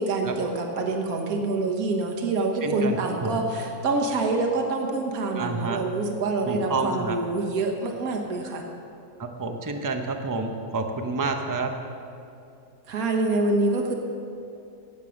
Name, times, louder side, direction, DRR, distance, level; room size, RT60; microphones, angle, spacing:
voice 1, 0.0-8.6 12.9-13.9, right 2 dB, 60° right, 2 dB, 1.8 m, -26 dB
voice 2, 2.6-3.0 3.2-3.4 5.4-5.8 6.4-7.2 9.4-11.7, right 3 dB, 20° right, 5 dB, 0.5 m, -28 dB
17.5 x 7.6 x 6.4 m, 2.7 s
omnidirectional pair, 1.8 m